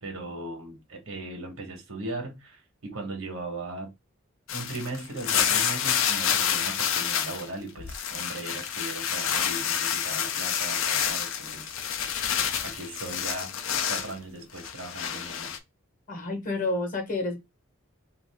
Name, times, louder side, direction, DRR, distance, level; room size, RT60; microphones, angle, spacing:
voice 1, 0.0-3.9 4.5-12.2 12.6-13.5 13.9-15.5, right 2 dB, 75° right, 1.0 m, -38 dB
sound 1, 4.5-7.5 7.8-14.1 14.6-15.6, left 8 dB, 65° left, 0.4 m, -28 dB
voice 2, 16.1-17.4, left 2 dB, 40° left, 0.9 m, -29 dB
2.5 x 2.4 x 3.3 m
head